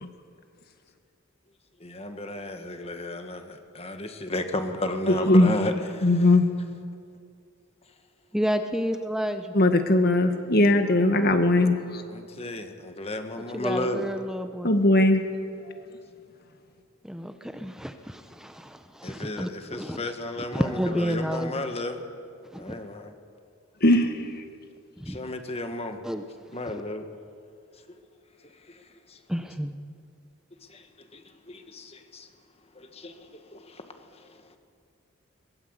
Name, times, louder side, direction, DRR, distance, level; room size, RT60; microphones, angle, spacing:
voice 1, 1.8-6.3 12.1-14.1 19.0-22.0 22.5-23.1 25.0-26.0 26.5-27.0 28.4-28.8 29.1-29.2 30.7-32.3 32.7-33.9 34.1-34.6, left 1 dB, 30° left, 6 dB, 1.7 m, -34 dB
voice 2, 5.1-5.5 6.0-6.5 9.5-12.0 14.6-15.2 23.8-24.1, left 1 dB, 50° left, 7 dB, 1.9 m, -19 dB
voice 3, 8.3-9.5 13.5-14.7 17.0-21.5 22.5-22.8 25.0-25.2 26.0-26.2 29.3-29.8, equal, 5° right, 8 dB, 0.8 m, -30 dB
22.0 x 20.5 x 8.1 m, 2.4 s
head